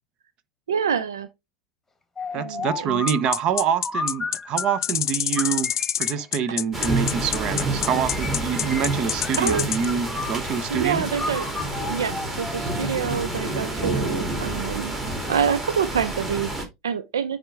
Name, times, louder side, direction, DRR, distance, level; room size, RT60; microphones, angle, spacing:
voice 1, 0.7-1.3 2.3-3.0 9.4-9.6 10.7-11.5 11.9-15.0 15.3-17.4, right 7 dB, 75° right, 0.5 m, -26 dB
sound 1, 2.2-4.9 5.4-7.2 7.8-8.9 9.2-10.7 11.1-12.9, left 2 dB, 10° left, 1.5 m, -33 dB
voice 2, 2.3-11.0, right 7 dB, 45° right, 0.9 m, -26 dB
sound 2, 3.1-9.9, left 10 dB, 75° left, 0.3 m, -26 dB
rain thunder rumbling, 6.7-16.7, right 2 dB, 15° right, 2.7 m, -29 dB
9.8 x 3.6 x 3.4 m
figure-of-eight pair, 80°, 2 cm